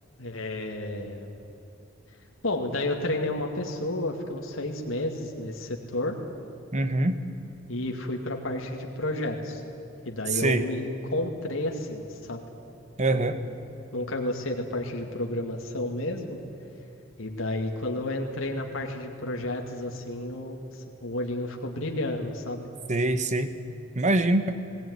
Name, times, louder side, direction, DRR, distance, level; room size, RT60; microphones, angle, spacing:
voice 1, 0.2-1.3 2.4-6.2 7.7-9.6 10.1-12.4 13.1-13.3 13.9-16.4 17.2-22.7, left 1 dB, 85° left, 2 dB, 2.2 m, -31 dB
voice 2, 6.7-7.2 10.3-10.6 13.0-13.4 22.9-23.5 23.9-24.5, right 2 dB, 35° right, 10 dB, 1.2 m, -24 dB
19.5 x 19.0 x 9.6 m, 2.6 s
head